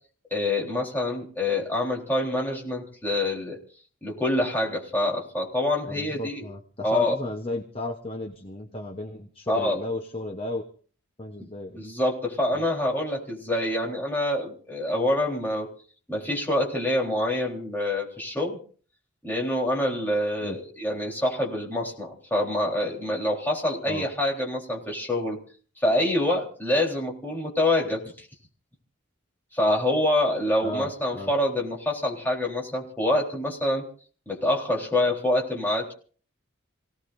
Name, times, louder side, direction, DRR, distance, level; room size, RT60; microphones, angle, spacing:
voice 1, 0.3-3.6 4.0-6.4 6.8-7.2 9.5-9.8 11.4-11.5 11.7-15.7 16.1-18.6 19.2-25.4 25.8-28.3 29.5-33.8 34.3-35.9, left 1 dB, 10° left, -2 dB, 3.9 m, -26 dB
voice 2, 5.9-10.6 11.2-11.8 12.5-12.6 20.4-20.6 23.8-24.1 30.6-31.3, left 2 dB, 25° left, 4 dB, 1.0 m, -34 dB
29.0 x 17.5 x 2.7 m, 0.43 s
head